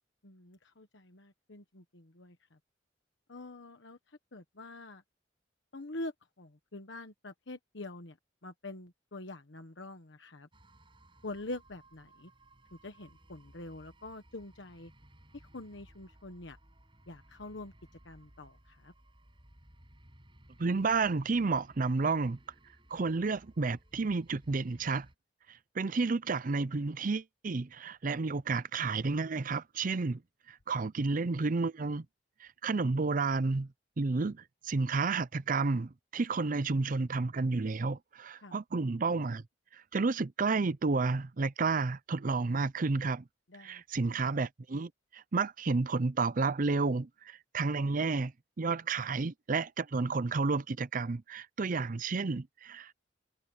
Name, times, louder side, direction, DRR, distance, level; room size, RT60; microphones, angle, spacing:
voice 1, 0.2-2.6 3.3-5.0 5.7-8.2 8.4-10.5 11.2-12.3 12.7-14.9 15.3-16.6 17.1-17.7 18.0-18.9 38.4-38.6 43.5-43.8, left 2 dB, 75° left, 1.3 m, -45 dB
sound 1, 10.5-25.2, right 1 dB, 30° right, 6.0 m, -60 dB
voice 2, 20.6-22.4 22.9-25.1 25.5-30.2 30.5-32.1 32.4-33.7 34.0-39.4 39.7-43.2 43.6-48.3 48.6-52.9, right 4 dB, 45° right, 0.6 m, -31 dB
head